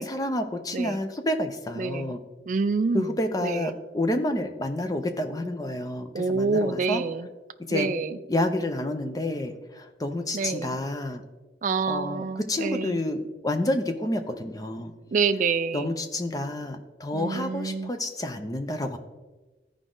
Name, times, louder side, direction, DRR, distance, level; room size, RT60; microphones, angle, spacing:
voice 1, 0.0-2.2 2.9-7.0 7.7-7.9 8.3-11.2 11.9-14.9 15.7-19.0, left 1 dB, 20° left, 6 dB, 0.6 m, -29 dB
voice 2, 1.8-2.2 2.5-3.7 6.1-7.3 7.7-8.2 10.3-10.8 11.6-13.0 15.1-15.9 17.1-17.9, right 4 dB, 40° right, 12 dB, 0.3 m, -27 dB
13.5 x 4.9 x 3.8 m, 1.2 s
head